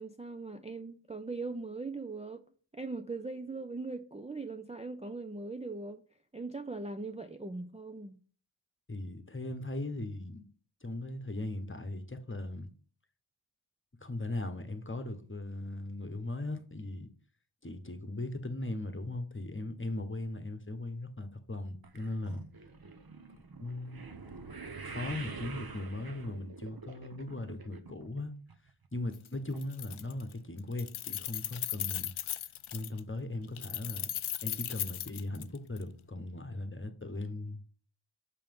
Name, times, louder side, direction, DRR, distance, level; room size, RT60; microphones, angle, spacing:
voice 1, 0.0-2.4 2.7-6.0 6.3-8.2, right 3 dB, 15° right, 0.5 m, -40 dB
voice 2, 8.9-10.4 10.8-12.7 14.0-17.1 17.6-22.4 23.6-24.0 24.8-28.3 28.9-32.1 32.7-34.1 34.4-37.7, left 2 dB, 25° left, 1.1 m, -38 dB
sound 1, 21.8-28.2 28.5-29.0 29.5-29.6 29.9-30.0, right 4 dB, 45° right, 1.0 m, -46 dB
Keys jangling, 29.1-29.3 29.6-30.3 30.6-33.0 33.6-35.8, left 11 dB, 75° left, 0.5 m, -37 dB
6.8 x 5.6 x 5.4 m
wide cardioid pair, 65°, 49 cm